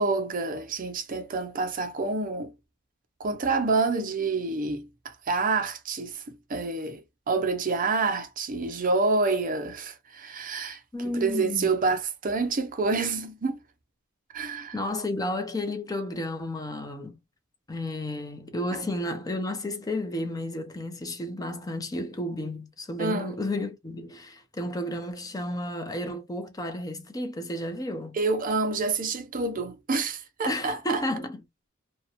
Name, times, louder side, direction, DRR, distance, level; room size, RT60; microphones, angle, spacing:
voice 1, 0.0-2.5 3.2-6.2 6.5-10.8 11.1-13.6 14.3-14.7 23.0-23.3 28.2-31.0, right 3 dB, 40° right, 0.5 m, -28 dB
voice 2, 10.9-11.7 14.7-17.2 17.7-28.2 30.5-31.4, left 1 dB, 20° left, 0.5 m, -32 dB
2.8 x 2.2 x 2.4 m
head